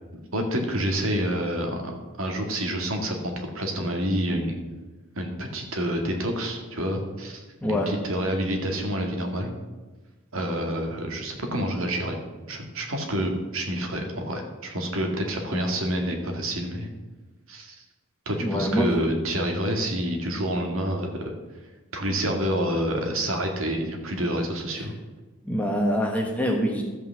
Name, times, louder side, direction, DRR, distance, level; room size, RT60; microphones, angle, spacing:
voice 1, 0.3-4.5 5.2-7.4 7.7-9.5 10.3-12.2 12.5-16.9 17.5-17.8 18.3-21.3 21.9-24.9, right 1 dB, 65° right, 3 dB, 1.9 m, -28 dB
voice 2, 7.6-7.9 18.4-18.9 25.4-26.8, equal, 5° left, 0 dB, 1.5 m, -24 dB
13.0 x 5.8 x 7.4 m, 1.2 s
head